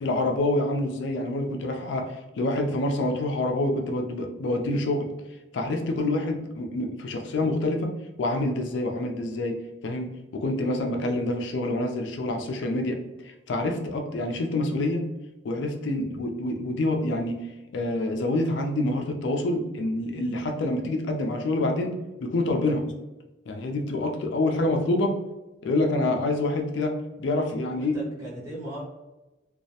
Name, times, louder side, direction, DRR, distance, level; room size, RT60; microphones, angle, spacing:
voice 1, 0.0-5.1 5.5-7.9 8.2-13.0 13.5-15.1 15.4-17.5 17.7-22.9 23.5-25.1 25.6-26.9 27.2-28.0, left 2 dB, 75° left, 3 dB, 0.4 m, -27 dB
voice 2, 27.7-28.8, right 1 dB, 15° right, -8 dB, 0.9 m, -38 dB
2.2 x 2.0 x 2.7 m, 1.0 s
head